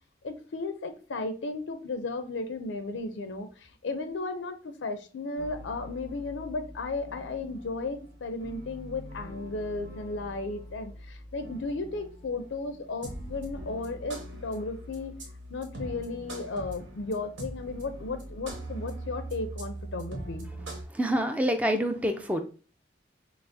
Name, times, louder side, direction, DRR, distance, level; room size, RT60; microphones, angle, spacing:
voice 1, 0.2-15.2 15.5-20.5, left 3 dB, 85° left, 8 dB, 0.5 m, -35 dB
sound 1, 5.4-20.8, right 1 dB, 85° right, 1.2 m, -42 dB
voice 2, 20.9-22.4, equal, 10° right, 6 dB, 0.3 m, -26 dB
5.7 x 2.0 x 2.6 m, 0.38 s
head